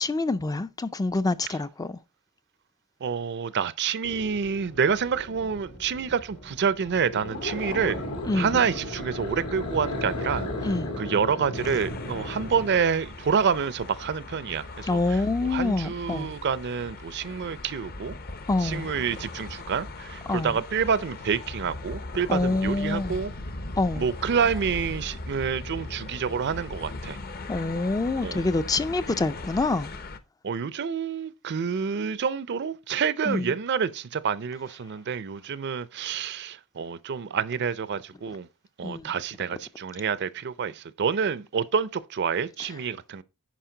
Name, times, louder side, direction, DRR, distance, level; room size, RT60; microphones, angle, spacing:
voice 1, 0.0-2.0 8.3-8.5 10.6-10.9 14.9-16.3 18.5-18.9 20.3-20.5 22.3-23.2 23.8-24.1 27.5-29.9 33.3-33.5 38.8-39.1, left 2 dB, 15° left, 0.3 m, -26 dB
voice 2, 3.0-8.0 8.3-10.5 11.0-18.2 18.6-23.3 24.0-27.2 28.2-28.5 30.4-38.5 38.8-43.2, right 6 dB, 50° right, 0.5 m, -28 dB
sound 1, 4.0-12.8, left 1 dB, 85° left, 2.8 m, -35 dB
sound 2, 11.5-30.2, left 2 dB, 40° left, 0.7 m, -39 dB
10.0 x 5.0 x 3.8 m
head